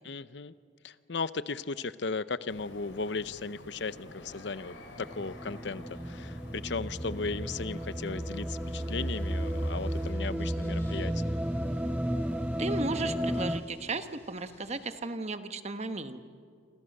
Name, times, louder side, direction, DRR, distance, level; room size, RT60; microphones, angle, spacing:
voice 1, 0.0-0.5 0.8-11.4, left 4 dB, 65° left, 15 dB, 0.7 m, -36 dB
sound 1, 2.5-10.1, left 1 dB, 85° left, 4.0 m, -50 dB
sound 2, 5.0-13.6, equal, 5° right, 0.5 m, -33 dB
sound 3, 8.6-15.0, left 1 dB, 10° left, 5.5 m, -60 dB
voice 2, 12.6-16.2, right 3 dB, 35° right, 9 dB, 1.1 m, -35 dB
28.0 x 26.0 x 6.6 m, 2.3 s
head